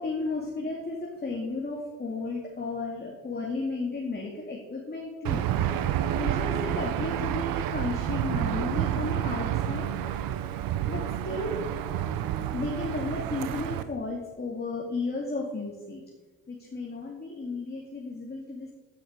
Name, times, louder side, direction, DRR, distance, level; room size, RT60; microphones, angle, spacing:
voice 1, 0.0-5.5 6.2-9.9 10.9-11.6 12.5-16.0 16.5-18.7, left 3 dB, 25° left, -2 dB, 2.4 m, -34 dB
Aircraft / Engine, 5.2-13.8, right 10 dB, 70° right, 0.9 m, -29 dB
15.0 x 6.3 x 5.1 m, 1.2 s
supercardioid pair, 70°, 36 cm